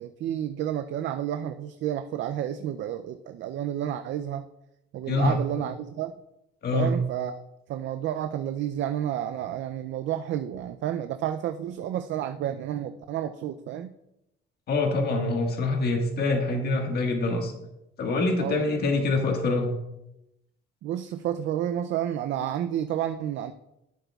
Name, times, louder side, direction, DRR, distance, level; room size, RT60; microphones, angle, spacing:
voice 1, 0.0-4.5 4.9-6.1 6.7-7.4 7.7-13.9 18.4-18.7 20.8-23.5, right 11 dB, 65° right, 9 dB, 0.4 m, -30 dB
voice 2, 6.6-7.0 14.7-17.5 18.0-19.7, left 2 dB, 50° left, 2 dB, 1.6 m, -25 dB
11.5 x 7.8 x 2.3 m, 0.88 s
cardioid pair, 125°, 20 cm